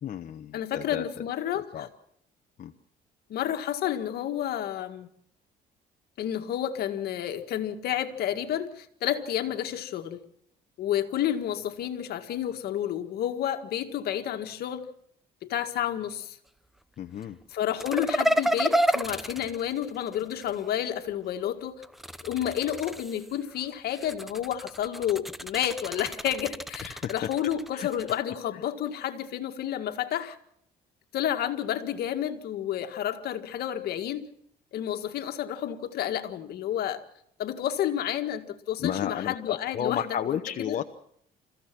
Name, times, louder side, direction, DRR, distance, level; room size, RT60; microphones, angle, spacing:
voice 1, 0.0-1.3 1.5-1.9 2.6-2.7 17.0-17.4 26.8-27.1 27.7-27.9 38.8-40.8, left 9 dB, 50° left, 1.0 m, -33 dB
voice 2, 0.5-1.9 3.3-5.1 6.2-10.2 10.8-14.9 15.4-16.4 17.5-21.8 22.2-30.4 31.1-34.3 34.7-37.0 37.4-40.4 40.6-40.8, left 10 dB, 70° left, 1.9 m, -30 dB
sound 1, 17.8-20.6 21.8-23.4 23.9-28.2, right 1 dB, ahead, 0.8 m, -30 dB
29.0 x 15.0 x 6.1 m
cardioid pair, 110°, 17 cm